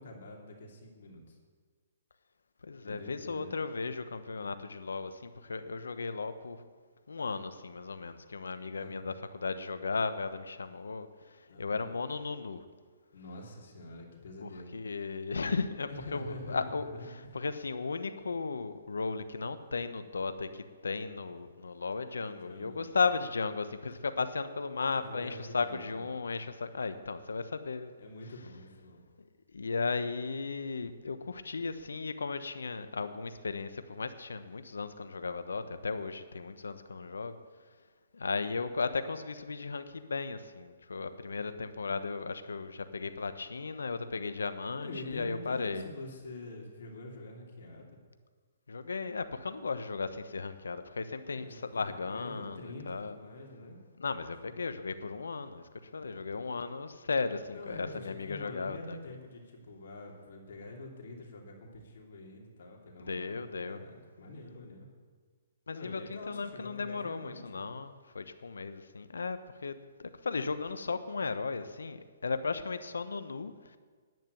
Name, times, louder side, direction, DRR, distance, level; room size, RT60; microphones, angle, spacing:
voice 1, 0.0-1.4 2.8-3.5 8.7-9.2 11.5-11.9 13.1-14.8 15.9-17.4 22.2-22.9 24.9-26.2 28.0-29.0 44.8-48.0 51.3-53.8 54.1-54.5 56.0-56.3 57.5-64.9 65.7-67.7 71.5-71.7 72.0-72.1, left 2 dB, 65° left, 0 dB, 2.8 m, -46 dB
voice 2, 2.6-6.6 7.1-12.6 14.4-16.9 17.3-27.9 29.5-37.4 38.1-45.8 48.7-53.2 54.0-55.6 55.9-59.0 63.1-63.8 65.7-73.8, left 4 dB, 85° left, 11 dB, 1.0 m, -35 dB
10.5 x 9.1 x 9.3 m, 1.5 s
hypercardioid pair, 140°, 0 cm